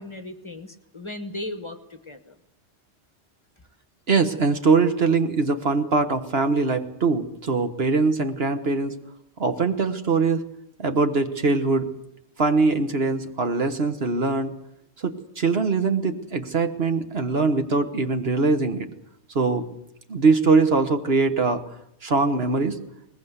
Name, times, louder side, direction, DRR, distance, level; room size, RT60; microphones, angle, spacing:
voice 1, 0.0-2.4, left 1 dB, 25° left, 10 dB, 1.3 m, -36 dB
voice 2, 4.1-8.9 9.4-10.4 10.8-11.9 12.4-14.5 15.0-18.9 19.3-19.7 20.1-21.6 22.0-22.8, right 4 dB, 60° right, 8 dB, 1.6 m, -22 dB
21.0 x 20.0 x 8.1 m, 0.77 s
omnidirectional pair, 1.2 m